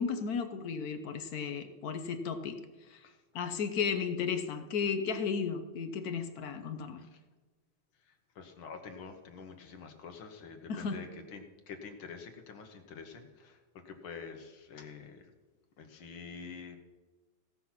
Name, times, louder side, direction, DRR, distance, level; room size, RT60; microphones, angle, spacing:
voice 1, 0.0-2.6 2.9-3.0 3.3-7.0 10.7-11.1, left 6 dB, 60° left, 8 dB, 1.1 m, -34 dB
voice 2, 8.1-15.3 15.8-16.8, left 5 dB, 85° left, 5 dB, 2.0 m, -47 dB
17.0 x 6.0 x 5.7 m, 1.3 s
omnidirectional pair, 2.2 m